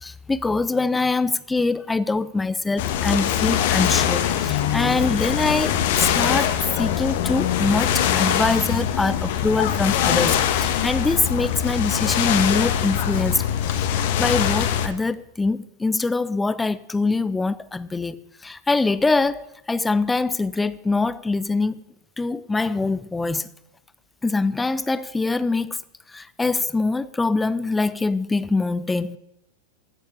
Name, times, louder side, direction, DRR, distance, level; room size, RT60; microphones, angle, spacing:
voice 1, 0.0-13.4 13.7-18.2 18.4-21.8 22.2-23.5 24.2-25.8 26.1-29.2, left 3 dB, 10° left, 0.6 m, -24 dB
sound 1, 2.8-14.9, left 10 dB, 50° left, 1.3 m, -22 dB
14.5 x 7.2 x 7.3 m
figure-of-eight pair, 90°, 0 cm